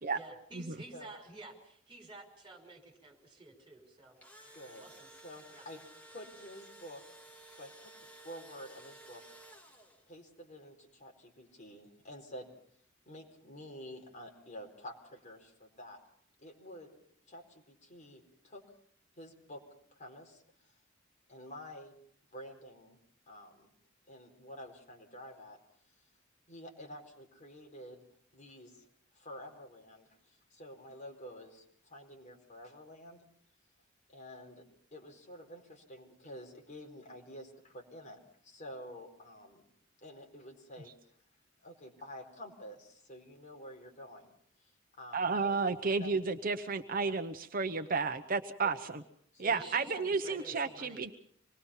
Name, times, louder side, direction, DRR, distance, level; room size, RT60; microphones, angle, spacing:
voice 1, 0.1-4.2 4.8-5.1 5.5-5.6 49.5-51.0, right 2 dB, 25° right, 3 dB, 5.2 m, -51 dB
Engine / Drill, 4.0-10.2, right 1 dB, 10° left, 2.5 m, -55 dB
voice 2, 4.5-4.9 5.2-5.8 6.1-7.0 7.5-7.9 8.2-9.2 10.1-12.5 13.1-16.0 16.4-16.9 17.3-18.6 19.2-19.6 19.9-20.7 21.3-22.0 22.3-23.0 23.3-23.7 24.1-25.6 26.5-28.0 28.3-28.9 29.1-33.2 34.1-34.6 34.9-39.7 40.0-40.9 41.6-44.3 44.6-44.7 45.0-45.6 46.0-46.1 47.0-47.1 47.9-48.0 48.6-48.8 49.3-50.7, equal, 40° left, 1 dB, 4.5 m, -49 dB
voice 3, 45.1-49.0 49.4-51.1, right 4 dB, 45° right, 8 dB, 0.9 m, -32 dB
26.0 x 20.5 x 5.7 m, 0.65 s
head